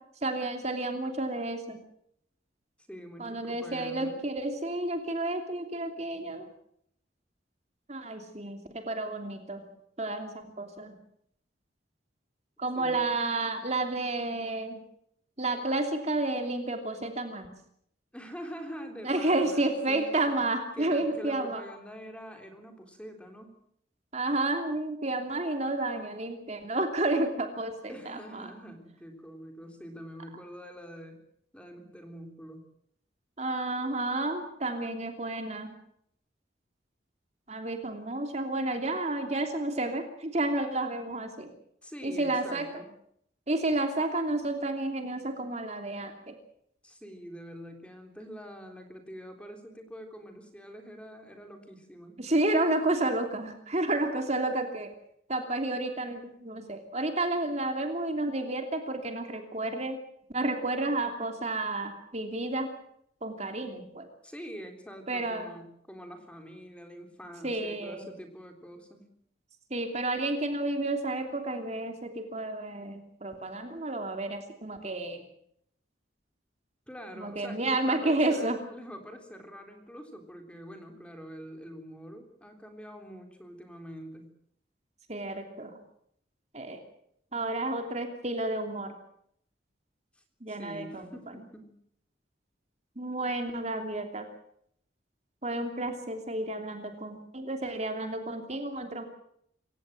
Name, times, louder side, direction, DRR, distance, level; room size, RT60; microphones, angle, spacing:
voice 1, 0.2-1.8 3.2-6.5 7.9-9.6 10.0-11.0 12.6-14.8 15.4-17.5 19.0-21.6 24.1-28.5 33.4-35.7 37.5-41.5 42.0-42.7 43.5-46.4 52.2-54.9 55.3-60.0 60.3-62.7 63.2-64.1 65.1-65.5 67.4-68.1 69.7-75.2 77.2-78.6 85.1-85.8 86.5-86.8 87.3-88.9 90.4-91.1 93.0-94.3 95.4-99.0, right 2 dB, 35° right, 5 dB, 2.9 m, -31 dB
voice 2, 2.9-4.2 12.7-13.1 18.1-20.5 20.7-23.6 27.9-31.2 31.5-32.7 41.8-42.9 46.8-52.3 64.2-69.1 76.9-84.4 90.2-91.8, equal, 5° left, 5 dB, 3.7 m, -45 dB
26.5 x 16.0 x 7.7 m, 0.71 s
head